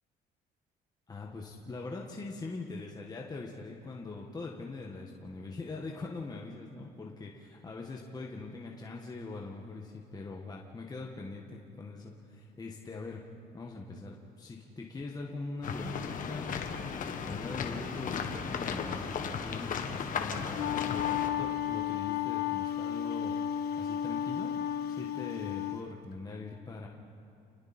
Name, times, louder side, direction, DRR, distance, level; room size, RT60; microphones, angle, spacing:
voice 1, 1.1-13.3 13.5-16.6 17.0-19.1 19.4-26.9, left 3 dB, 25° left, -1 dB, 1.7 m, -42 dB
sound 1, 15.6-21.3, left 6 dB, 50° left, 1.7 m, -36 dB
Wind instrument woodwind instrument, 20.3-25.8, left 10 dB, 70° left, 1.4 m, -33 dB
29.5 x 20.5 x 4.4 m, 2.5 s
cardioid pair, 110°, 17 cm